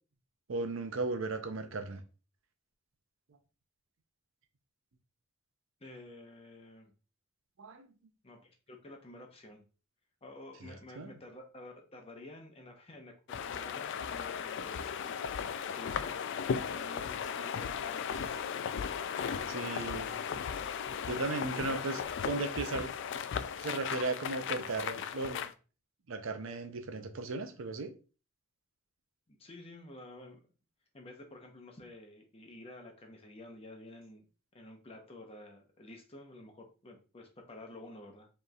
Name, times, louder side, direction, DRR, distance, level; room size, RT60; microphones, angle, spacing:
voice 1, 0.5-2.0 7.6-7.9 11.0-11.1 19.5-20.1 21.1-22.9 23.6-25.5 26.1-27.9, right 3 dB, 70° right, 0.6 m, -36 dB
voice 2, 5.8-6.9 8.2-9.6 10.2-14.9 15.7-18.5 19.4-20.5 29.3-30.4 30.9-34.3 34.5-38.3, left 2 dB, 30° left, 0.8 m, -51 dB
sound 1, 13.3-25.5, left 7 dB, 60° left, 0.3 m, -36 dB
5.0 x 3.1 x 2.3 m
head